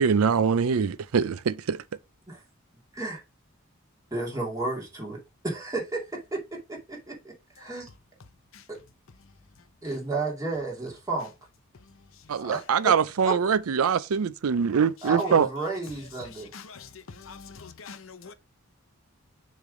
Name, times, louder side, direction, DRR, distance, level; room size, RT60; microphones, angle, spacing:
voice 1, 0.0-1.8 12.3-15.5, right 6 dB, 80° right, 0.5 m, -23 dB
voice 2, 4.1-5.2 5.4-6.4 6.7-7.9 8.7-8.8 9.8-11.3 12.4-12.9 13.2-13.4 15.0-16.5, right 2 dB, 15° right, 2.4 m, -32 dB
voice 3, 16.5-16.9 17.2-18.3, left 5 dB, 65° left, 0.7 m, -44 dB
6.7 x 3.3 x 5.1 m
head